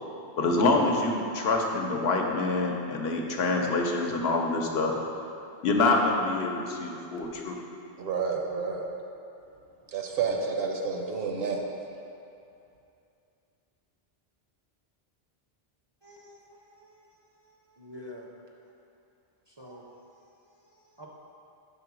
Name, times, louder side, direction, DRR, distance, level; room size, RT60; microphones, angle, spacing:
voice 1, 0.4-4.9 5.6-7.6, left 3 dB, 80° left, 1 dB, 0.9 m, -26 dB
voice 2, 8.0-8.8 9.9-11.6, right 5 dB, 70° right, 1 dB, 0.9 m, -30 dB
voice 3, 16.0-17.0 17.8-18.3 19.5-19.8 21.0-21.1, left 1 dB, 35° right, -3 dB, 0.4 m, -47 dB
5.6 x 3.7 x 6.0 m, 2.6 s
omnidirectional pair, 1.0 m